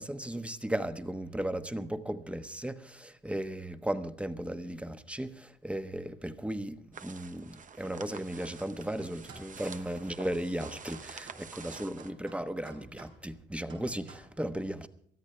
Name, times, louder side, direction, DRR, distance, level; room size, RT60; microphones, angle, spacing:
voice 1, 0.0-14.9, right 1 dB, 5° right, 1.2 m, -36 dB
sound 1, 6.9-12.1, right 6 dB, 40° right, 0.9 m, -48 dB
sound 2, 9.2-14.2, right 3 dB, 80° right, 5.5 m, -53 dB
22.5 x 13.5 x 3.4 m
cardioid pair, 90°, 20 cm